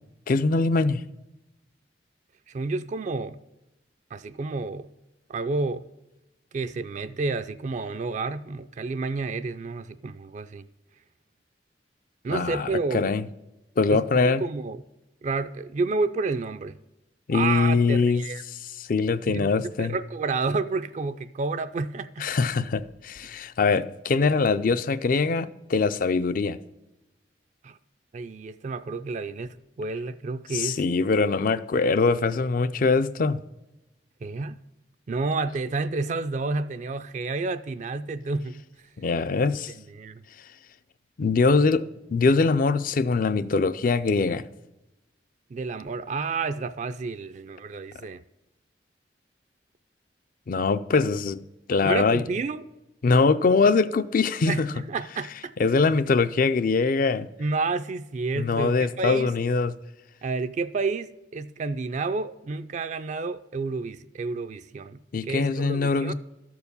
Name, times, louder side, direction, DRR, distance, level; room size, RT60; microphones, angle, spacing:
voice 1, 0.3-1.1 12.3-13.3 13.8-14.4 17.3-18.2 18.8-20.0 22.2-26.6 30.5-33.4 39.0-39.7 41.2-41.8 42.1-44.5 50.5-51.4 51.7-52.2 53.0-54.7 55.6-57.3 58.3-59.8 65.1-66.1, left 4 dB, 50° left, 0.4 m, -23 dB
voice 2, 2.5-3.4 4.1-4.9 5.3-5.9 6.5-10.7 12.2-13.1 13.9-14.8 15.2-16.8 17.3-18.4 19.3-22.2 27.6-27.8 28.1-30.8 34.2-34.6 35.1-38.6 39.9-40.2 45.5-48.2 51.8-52.6 54.5-55.5 57.4-59.3 60.2-66.1, right 3 dB, 40° right, 0.3 m, -30 dB
13.0 x 4.7 x 6.7 m
head